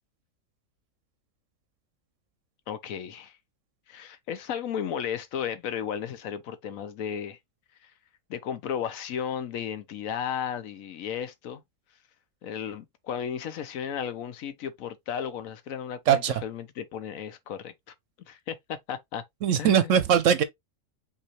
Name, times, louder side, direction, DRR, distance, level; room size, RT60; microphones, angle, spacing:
voice 1, 2.7-3.4 3.9-7.4 7.8-7.9 8.3-11.6 12.4-17.7 18.3-19.2 19.5-20.0, left 8 dB, 75° left, 1.1 m, -34 dB
voice 2, 16.1-16.4 19.4-20.4, right 8 dB, 65° right, 0.9 m, -21 dB
5.6 x 2.9 x 2.9 m
omnidirectional pair, 1.5 m